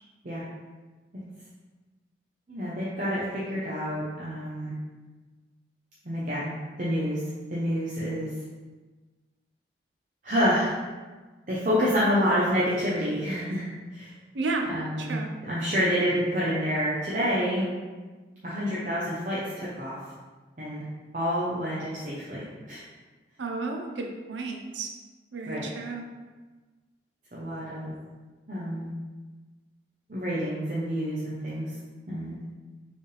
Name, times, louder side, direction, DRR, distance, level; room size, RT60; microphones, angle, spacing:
voice 1, 2.5-4.7 6.0-6.5 6.8-7.2 7.5-8.3 10.2-10.8 11.5-13.6 13.9-14.1 14.7-17.7 18.4-20.0 20.6-20.8 21.1-22.8 25.5-25.7 27.3-27.9 28.5-28.9 30.1-31.7 32.1-32.4, equal, 45° right, -8 dB, 0.7 m, -28 dB
voice 2, 14.3-14.7 15.0-15.3 23.4-24.9 25.3-26.1, right 3 dB, 90° right, 2 dB, 0.6 m, -32 dB
4.5 x 3.4 x 3.2 m, 1.3 s
head